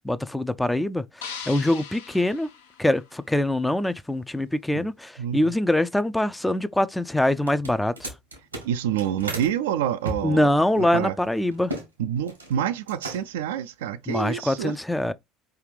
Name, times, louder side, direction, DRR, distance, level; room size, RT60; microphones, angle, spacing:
voice 1, 0.0-1.0 1.5-2.5 2.8-8.1 10.2-11.7 14.1-15.1, left 1 dB, 5° left, 0.4 m, -24 dB
sound 1, 1.2-3.5, left 7 dB, 75° left, 0.8 m, -40 dB
voice 2, 5.2-5.5 8.6-10.5 10.8-11.1 12.0-14.7, right 10 dB, 70° right, 0.4 m, -27 dB
sound 2, 7.4-9.5 10.0-11.9 12.2-12.6 12.9-13.5, right 1 dB, 90° right, 1.3 m, -35 dB
4.8 x 3.4 x 3.2 m
figure-of-eight pair, 65°, 0 cm